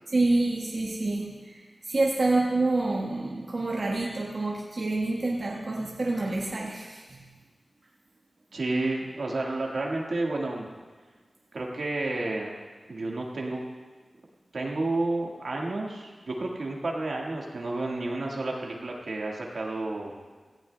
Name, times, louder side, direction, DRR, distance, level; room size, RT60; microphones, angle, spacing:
voice 1, 0.1-7.3, right 2 dB, 60° right, -3 dB, 1.3 m, -27 dB
voice 2, 8.5-10.6 11.5-12.5 12.9-13.6 14.5-20.1, right 2 dB, 75° right, -1 dB, 1.7 m, -31 dB
17.0 x 15.0 x 2.3 m, 1.5 s
wide cardioid pair, 90°, 0 cm